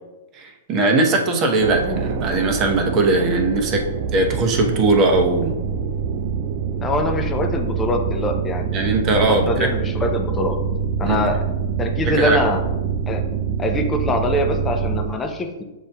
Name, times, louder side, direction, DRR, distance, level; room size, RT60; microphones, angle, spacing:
voice 1, 0.3-3.9 4.1-5.6 8.7-9.7 11.1-11.2 12.0-12.4, right 2 dB, 35° right, 2 dB, 0.8 m, -19 dB
sound 1, 1.6-15.1, right 6 dB, 50° right, 0.3 m, -25 dB
voice 2, 6.8-10.6 11.0-11.4 11.8-12.6 13.1-13.2 13.6-15.6, left 1 dB, 20° left, 3 dB, 0.6 m, -24 dB
7.2 x 2.6 x 2.2 m, 1.1 s
hypercardioid pair, 115°, 0 cm